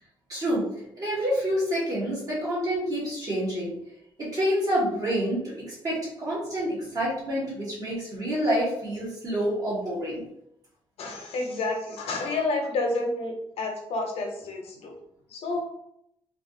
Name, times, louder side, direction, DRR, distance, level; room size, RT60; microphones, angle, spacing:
voice 1, 0.3-0.7 1.0-3.7 4.2-10.2, equal, 35° right, -6 dB, 1.1 m, -28 dB
voice 2, 11.0-14.9 15.3-15.6, left 2 dB, 80° left, 2 dB, 0.7 m, -29 dB
3.2 x 2.3 x 2.6 m, 0.77 s
wide cardioid pair, 165°, 10 cm